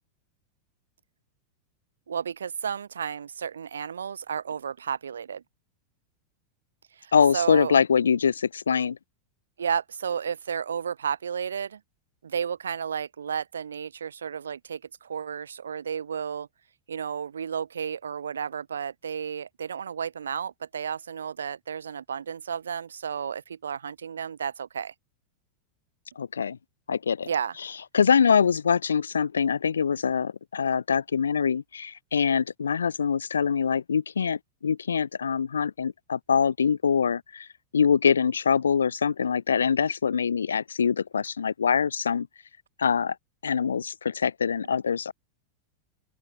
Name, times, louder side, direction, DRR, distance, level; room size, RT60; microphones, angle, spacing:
voice 1, 2.1-5.4 6.9-7.7 9.6-11.8 12.2-16.5 16.9-24.9 27.2-27.6, right 7 dB, 70° right, 2.2 m, -32 dB
voice 2, 7.1-9.0 26.2-26.6 26.9-27.3 27.9-37.5 37.7-42.3 42.8-43.1 43.4-45.1, left 6 dB, 70° left, 0.6 m, -24 dB
open air
figure-of-eight pair, 90°, 0 cm